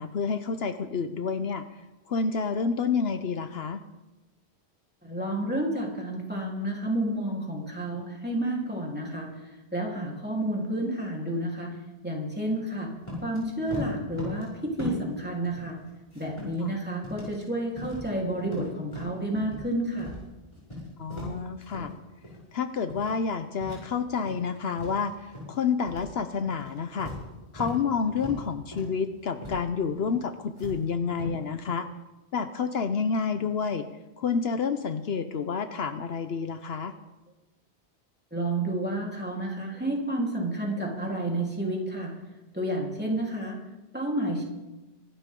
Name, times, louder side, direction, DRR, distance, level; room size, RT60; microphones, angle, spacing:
voice 1, 0.0-1.6 2.1-3.8 16.6-16.8 21.0-21.9 22.5-27.1 27.5-31.9 32.3-33.9 34.2-36.9, left 5 dB, 70° left, 9 dB, 1.0 m, -29 dB
voice 2, 5.0-9.3 9.7-11.7 12.0-12.9 13.2-15.8 16.1-20.1 38.3-42.1 42.5-43.6 43.9-44.4, right 1 dB, 10° right, -3 dB, 3.6 m, -30 dB
sound 1, 13.0-13.4 13.7-14.5 14.8-15.2 15.4-16.7 17.0-17.4 17.8-18.1 18.4-19.7 20.0-20.2 20.5-21.9 22.2-22.5 22.9-23.2 23.6-24.5 24.8-25.5 25.9-26.1 26.5-27.8 28.2-28.4 28.7-29.0 29.4-29.6 29.9-30.2 30.6-31.4, left 2 dB, 30° left, 7.5 m, -38 dB
25.0 x 12.5 x 3.7 m, 1.0 s
omnidirectional pair, 1.1 m